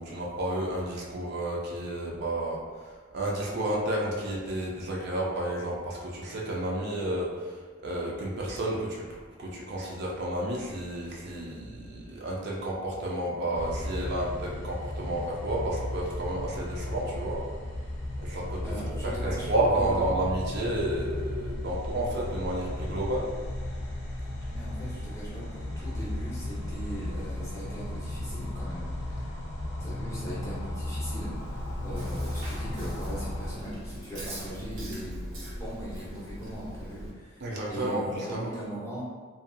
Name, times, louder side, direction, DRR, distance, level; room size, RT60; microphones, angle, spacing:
voice 1, 0.0-17.4 18.2-18.6 19.0-23.3 37.4-38.5, right 1 dB, 55° right, -3 dB, 0.4 m, -31 dB
sound 1, 13.5-33.5, left 1 dB, 55° left, 0.5 m, -35 dB
voice 2, 18.6-19.5 19.7-20.0 24.5-29.3 29.8-31.3 31.8-35.3 35.6-39.0, right 1 dB, 15° left, -8 dB, 0.6 m, -39 dB
Chewing mastication, 31.3-37.1, equal, 85° right, 0.7 m, -40 dB
2.5 x 2.3 x 2.5 m, 1.5 s
head